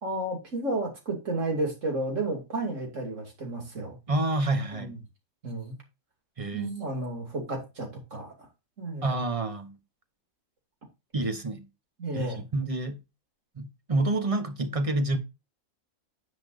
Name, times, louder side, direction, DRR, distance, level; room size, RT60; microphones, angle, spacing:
voice 1, 0.0-4.0 4.8-5.0 5.4-5.8 6.5-8.3 8.8-9.1 12.0-12.4, right 2 dB, 65° right, 2.9 m, -32 dB
voice 2, 4.1-4.9 6.4-6.7 9.0-9.8 11.1-11.7 12.1-13.0 13.6-15.2, right 2 dB, 25° right, 1.0 m, -28 dB
9.9 x 6.9 x 2.5 m
omnidirectional pair, 1.4 m